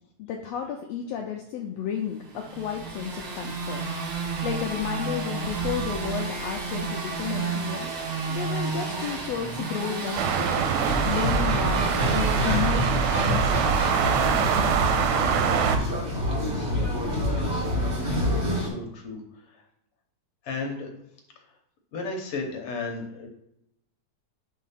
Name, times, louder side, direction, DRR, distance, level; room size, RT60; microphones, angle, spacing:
voice 1, 0.2-3.8 4.4-7.9 8.3-10.8 11.1-13.8 14.8-15.1, left 8 dB, 85° left, 2 dB, 1.4 m, -32 dB
sound 1, 2.3-15.2, right 4 dB, 60° right, 1.2 m, -32 dB
sound 2, 10.2-15.8, right 7 dB, 85° right, 2.1 m, -24 dB
sound 3, 10.9-18.7, equal, 35° right, 1.8 m, -27 dB
voice 2, 16.3-18.0 18.3-19.6 20.4-20.9 21.4-21.5 21.9-23.3, left 3 dB, 65° left, 2 dB, 1.5 m, -36 dB
4.5 x 4.1 x 5.6 m, 0.79 s
omnidirectional pair, 3.6 m